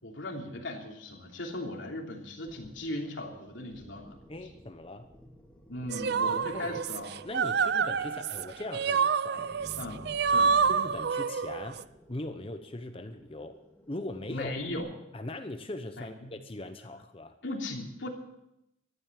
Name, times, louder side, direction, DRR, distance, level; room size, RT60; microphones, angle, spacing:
voice 1, 0.0-4.2 5.7-7.1 9.8-10.6 14.3-14.9 16.0-16.3 17.4-18.1, left 1 dB, 90° left, 0 dB, 3.1 m, -38 dB
sound 1, 2.5-14.8, equal, 5° left, 2.2 m, -54 dB
voice 2, 4.3-5.1 6.2-6.8 7.2-9.8 10.7-11.8 12.1-13.6 13.9-14.5 15.1-17.4, left 2 dB, 30° left, 7 dB, 0.9 m, -40 dB
sound 2, 5.9-11.8, right 6 dB, 60° right, 0.4 m, -28 dB
14.0 x 11.0 x 7.5 m, 0.84 s
head